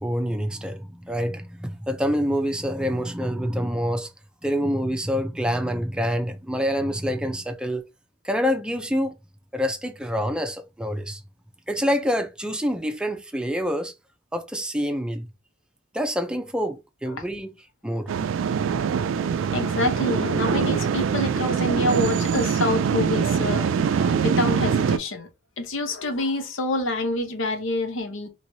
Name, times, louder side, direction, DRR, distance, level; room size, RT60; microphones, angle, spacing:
voice 1, 0.0-4.1 4.4-7.8 8.2-9.1 9.5-11.2 11.7-13.9 14.3-15.3 15.9-17.5 17.8-18.1, equal, 5° right, 0.4 m, -26 dB
roller coaster, 18.1-25.0, right 6 dB, 75° right, 0.3 m, -23 dB
voice 2, 19.5-25.3 25.6-28.3, left 2 dB, 80° left, 0.8 m, -27 dB
3.0 x 3.0 x 2.7 m
head